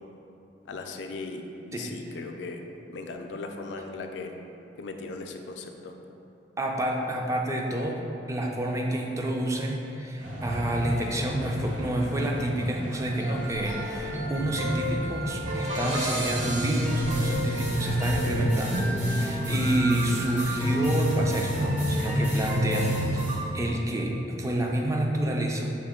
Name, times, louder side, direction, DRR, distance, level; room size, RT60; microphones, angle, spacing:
voice 1, 0.6-2.6 2.9-4.4 4.8-6.0, left 3 dB, 75° left, 4 dB, 0.3 m, -38 dB
voice 2, 1.7-2.0 6.6-8.0 8.3-23.2 23.5-25.7, right 1 dB, 15° right, 0 dB, 0.3 m, -28 dB
sound 1, 10.2-23.4, equal, 45° right, 0.8 m, -29 dB
5.6 x 2.1 x 3.6 m, 2.9 s
head